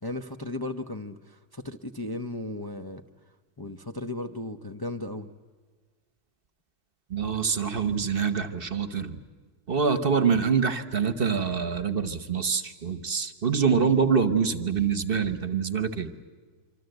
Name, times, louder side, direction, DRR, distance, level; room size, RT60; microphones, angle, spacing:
voice 1, 0.0-3.0 3.6-5.3, left 2 dB, 20° left, 5 dB, 0.7 m, -35 dB
voice 2, 7.1-9.2 9.7-16.1, right 6 dB, 50° right, 11 dB, 1.2 m, -25 dB
26.0 x 25.0 x 8.0 m, 1.5 s
omnidirectional pair, 1.3 m